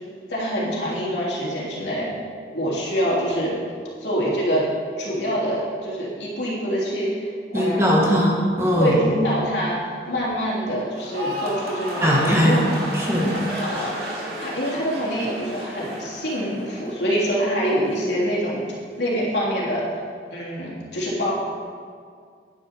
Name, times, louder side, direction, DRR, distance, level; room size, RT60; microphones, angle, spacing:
voice 1, 0.3-2.2 2.5-3.6 4.0-4.6 5.0-7.3 7.5-7.9 8.8-12.6 13.6-14.0 14.4-18.6 19.0-20.0 20.3-21.3, equal, 80° left, -6 dB, 3.4 m, -25 dB
voice 2, 7.5-9.0 12.0-12.7 12.9-13.4, equal, 15° right, -3 dB, 1.6 m, -19 dB
sound 1, 10.9-17.3 17.6-18.1, equal, 60° right, 2.4 m, -32 dB
10.5 x 10.0 x 4.5 m, 2.1 s
head